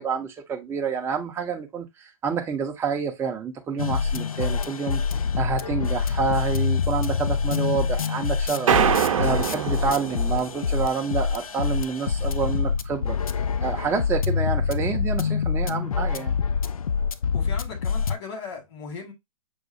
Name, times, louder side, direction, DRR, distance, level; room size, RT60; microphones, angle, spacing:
voice 1, 0.0-5.0 5.4-8.7 9.0-13.2 13.6-16.4, right 5 dB, 15° right, 0.6 m, -28 dB
sound 1, 3.8-18.2, left 6 dB, 85° left, 0.4 m, -26 dB
sound 2, 8.7-11.1, right 8 dB, 70° right, 0.6 m, -24 dB
voice 2, 17.3-19.1, left 5 dB, 50° left, 1.8 m, -37 dB
6.4 x 2.4 x 2.6 m
figure-of-eight pair, 115°, 18 cm